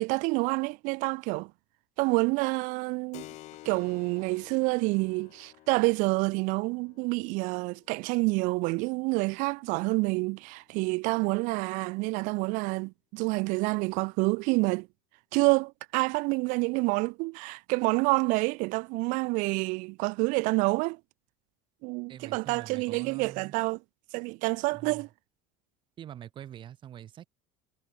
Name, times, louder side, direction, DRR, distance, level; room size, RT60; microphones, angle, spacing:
voice 1, 0.0-1.5 2.0-3.2 3.6-14.9 15.3-21.0 21.8-23.8 24.1-25.1, right 27 dB, 50° right, 0.5 m, -28 dB
Keyboard (musical), 3.1-11.3, left 17 dB, 45° left, 7.4 m, -54 dB
voice 2, 22.1-23.5 24.7-25.1 26.0-27.3, right 10 dB, 30° right, 3.6 m, -45 dB
cardioid pair, 175°, 17 cm